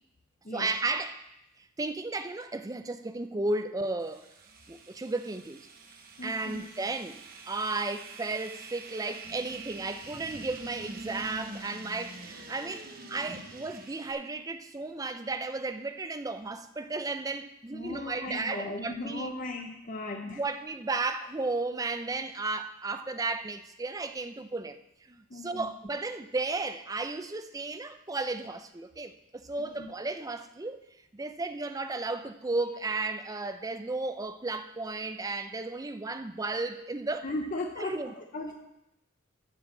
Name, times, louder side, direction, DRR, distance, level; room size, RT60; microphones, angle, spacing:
voice 1, 0.5-1.2 1.8-4.3 4.7-5.6 6.2-19.3 20.2-24.8 25.1-30.8 31.1-37.3 37.8-38.1, right 3 dB, 20° right, 0.5 m, -34 dB
sound 1, 4.0-14.1, right 3 dB, 50° right, 1.0 m, -46 dB
voice 2, 6.2-6.6 17.7-20.4 25.3-25.7 29.8-29.9 37.2-38.5, left 2 dB, 40° left, 0.7 m, -37 dB
7.4 x 6.2 x 7.2 m
head